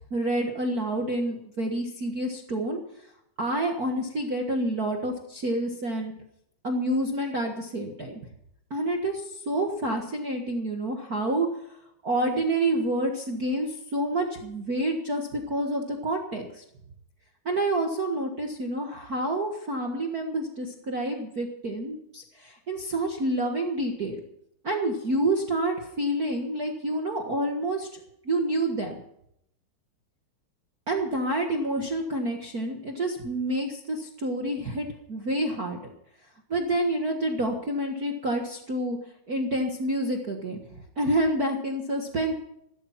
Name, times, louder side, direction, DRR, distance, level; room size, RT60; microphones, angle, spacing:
voice 1, 0.0-2.8 3.4-6.1 6.6-8.2 8.7-11.5 12.0-16.6 17.4-24.2 24.6-27.9 28.2-28.9 30.9-35.8 36.5-39.0 39.3-40.6 41.0-42.3, right 1 dB, 70° right, 1 dB, 0.8 m, -28 dB
15.0 x 13.0 x 5.7 m, 0.75 s
omnidirectional pair, 4.3 m